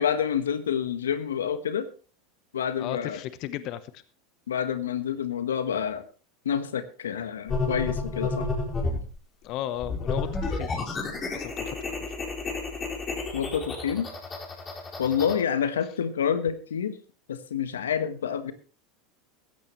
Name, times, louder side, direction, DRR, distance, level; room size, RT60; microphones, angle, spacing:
voice 1, 0.0-1.9 2.5-3.2 4.5-6.0 6.4-8.5 13.3-14.1 15.0-17.0 17.3-18.5, left 8 dB, 85° left, 12 dB, 1.3 m, -28 dB
voice 2, 2.8-4.0 9.4-11.0 11.3-12.1 15.2-15.4, left 12 dB, 55° left, 14 dB, 1.0 m, -36 dB
sound 1, 7.5-9.1 9.8-15.3, left 3 dB, 25° left, 5.1 m, -31 dB
16.5 x 14.0 x 3.2 m, 0.36 s
hypercardioid pair, 95°, 0 cm